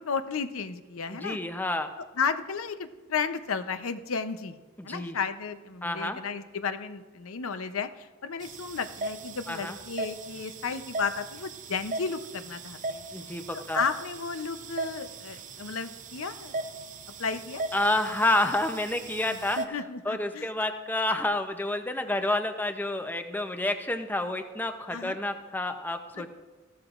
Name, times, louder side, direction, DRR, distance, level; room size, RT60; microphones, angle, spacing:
voice 1, 0.0-1.4 2.0-4.5 4.8-13.1 13.5-16.5 17.2-17.6 19.3-20.5 24.9-25.2 26.1-26.3, left 5 dB, 85° left, 10 dB, 0.7 m, -33 dB
voice 2, 1.1-1.9 4.8-5.2 5.8-6.2 9.5-9.8 13.1-13.8 17.7-19.6 20.1-26.3, left 1 dB, 10° left, 7 dB, 0.5 m, -29 dB
sound 1, 8.4-19.6, right 3 dB, 40° right, 0.7 m, -38 dB
15.0 x 12.5 x 2.5 m, 1.2 s
head